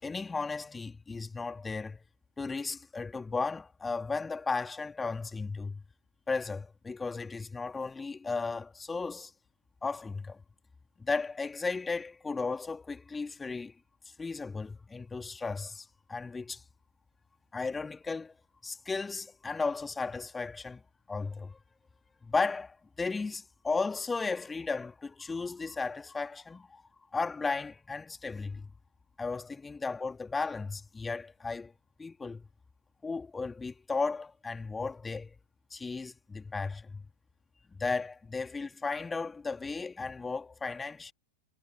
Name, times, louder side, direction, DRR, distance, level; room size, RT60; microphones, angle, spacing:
voice 1, 0.0-2.0 2.4-5.8 6.3-9.3 9.8-10.4 11.0-13.7 14.1-16.6 17.5-18.3 18.6-20.8 21.1-21.6 22.2-26.8 27.1-28.7 29.2-31.7 32.0-32.5 33.0-35.3 35.7-37.1 37.7-41.1, left 4 dB, 10° left, 2.8 m, -35 dB
figure-of-eight pair, 90°, 0 cm